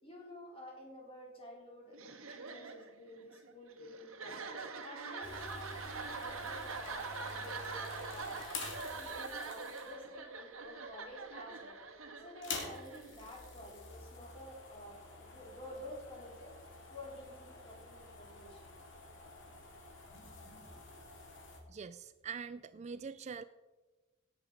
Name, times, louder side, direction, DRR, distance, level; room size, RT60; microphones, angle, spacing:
voice 1, 0.0-8.4 8.9-11.8 12.2-16.5 16.9-18.6 20.1-20.7, left 1 dB, 25° left, -2 dB, 4.1 m, -51 dB
sound 1, 1.9-13.6, right 4 dB, 80° right, 1.5 m, -44 dB
sound 2, 5.2-10.1 10.9-11.3 11.6-11.7 12.3-21.6, left 3 dB, 60° left, 2.9 m, -48 dB
voice 2, 21.7-23.4, right 6 dB, 35° right, 14 dB, 0.3 m, -44 dB
17.5 x 8.0 x 5.2 m, 1.2 s
head